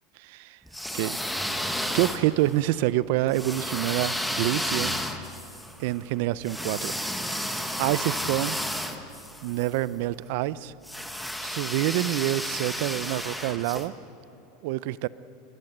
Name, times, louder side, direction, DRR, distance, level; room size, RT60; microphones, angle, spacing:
voice 1, 0.2-0.6 0.9-1.2 1.9-5.0 5.8-7.0 7.8-8.6 9.4-10.7 11.4-13.9 14.6-15.1, right 16 dB, 55° right, 18 dB, 0.5 m, -27 dB
sound 1, 0.7-2.5 3.3-9.7 10.8-13.9, equal, ahead, 1.0 m, -32 dB
23.0 x 21.0 x 7.9 m, 2.8 s
supercardioid pair, 175°, 0 cm